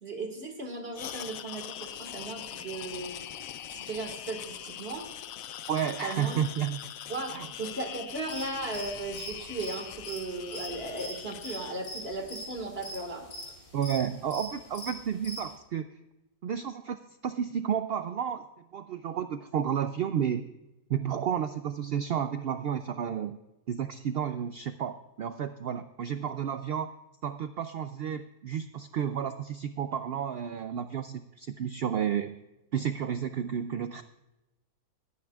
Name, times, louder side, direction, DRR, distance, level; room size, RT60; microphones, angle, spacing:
voice 1, 0.0-3.1 3.7-5.1 6.0-6.4 7.1-13.3, right 2 dB, 45° right, 4 dB, 2.0 m, -36 dB
sound 1, 0.9-11.8, left 10 dB, 70° left, 1.0 m, -42 dB
voice 2, 5.7-6.8 7.3-7.5 13.7-15.9 16.4-18.4 18.7-20.4 20.9-23.4 23.7-26.9 27.2-32.4 32.7-34.0, right 8 dB, 80° right, 10 dB, 0.5 m, -31 dB
sound 2, 8.3-15.5, left 1 dB, 85° left, 3.3 m, -42 dB
20.0 x 9.5 x 2.4 m, 0.98 s
omnidirectional pair, 1.5 m